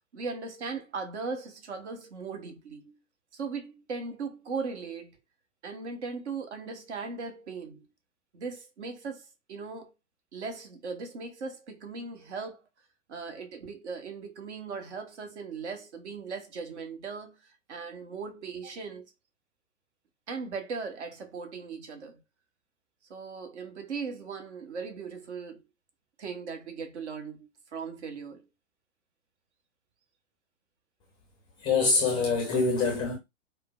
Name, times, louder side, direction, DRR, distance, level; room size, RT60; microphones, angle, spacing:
voice 1, 0.1-3.0 3.3-5.2 5.6-7.9 8.3-9.9 10.3-12.6 13.1-19.0 20.3-22.2 23.1-25.6 26.2-28.5, right 4 dB, 55° right, 1.1 m, -38 dB
voice 2, 31.6-33.2, left 4 dB, 10° left, 0.5 m, -25 dB
4.9 x 2.1 x 2.3 m
figure-of-eight pair, 115°, 40 cm